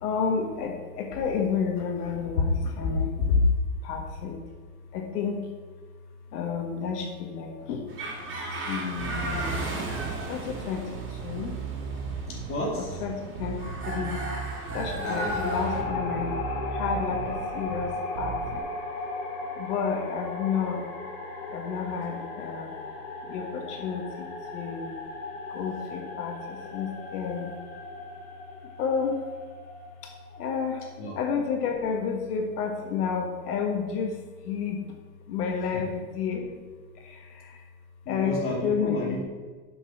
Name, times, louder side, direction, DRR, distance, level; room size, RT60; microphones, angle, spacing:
voice 1, 0.0-3.5 3.8-4.4 4.9-5.4 6.3-7.8 8.7-9.7 10.3-11.6 12.8-14.2 14.7-16.3 16.7-18.7 19.6-20.8 21.5-22.7 23.3-24.3 24.5-24.9 25.5-27.5 28.8-29.3 30.0-30.1 30.4-30.8 31.2-34.2 34.4-34.8 35.3-36.6 37.0-37.6 38.1-39.2, left 5 dB, 85° left, 2 dB, 1.6 m, -30 dB
sound 1, 7.9-15.8, right 2 dB, 25° right, 2.5 m, -35 dB
Bass guitar, 9.0-18.6, right 7 dB, 50° right, 0.7 m, -37 dB
voice 2, 12.3-13.0 15.0-15.4 31.0-31.2 35.7-35.8 38.0-39.2, left 1 dB, 30° left, -3 dB, 2.7 m, -33 dB
sound 2, 15.0-30.9, left 3 dB, 70° left, 2.9 m, -36 dB
7.8 x 5.5 x 6.5 m, 1.4 s
supercardioid pair, 150°, 45 cm